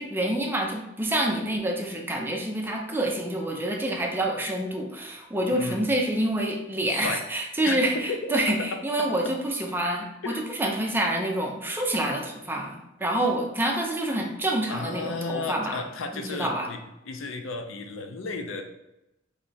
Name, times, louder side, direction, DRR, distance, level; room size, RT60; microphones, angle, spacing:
voice 1, 0.0-15.8 16.1-16.7, right 1 dB, 10° right, 1 dB, 0.6 m, -27 dB
voice 2, 5.5-5.8 6.9-7.2 7.7-8.2 10.2-10.4 14.7-16.8 17.1-18.7, left 3 dB, 90° left, 6 dB, 0.5 m, -33 dB
3.3 x 3.2 x 4.1 m, 0.91 s
head